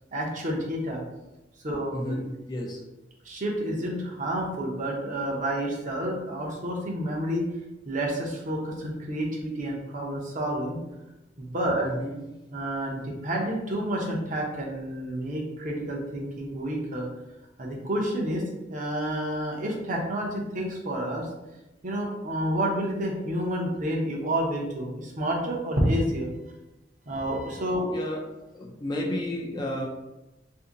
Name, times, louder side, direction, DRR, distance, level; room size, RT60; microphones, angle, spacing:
voice 1, 0.1-1.0 1.6-2.3 3.2-7.5 7.8-10.8 11.4-11.9 12.5-17.1 17.6-18.4 18.7-21.3 21.8-26.3 27.1-27.9, right 1 dB, 40° right, -1 dB, 0.7 m, -29 dB
voice 2, 1.9-2.8 11.8-12.3 27.9-28.2 28.5-29.9, left 1 dB, 20° left, -1 dB, 0.4 m, -32 dB
2.7 x 2.7 x 3.8 m, 0.97 s
head